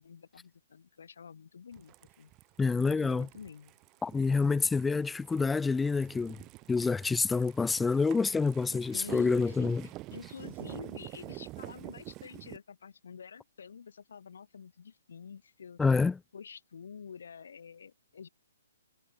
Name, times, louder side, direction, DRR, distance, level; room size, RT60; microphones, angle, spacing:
voice 1, 0.0-2.3 2.7-3.7 8.8-16.0 16.3-18.3, left 6 dB, 75° left, 3.4 m, -48 dB
sound 1, 1.7-12.6, right 20 dB, 20° right, 1.3 m, -48 dB
voice 2, 2.6-3.3 4.0-6.4 6.7-9.8 15.8-16.2, left 4 dB, 5° left, 0.5 m, -27 dB
hypercardioid pair, 165°, 0 cm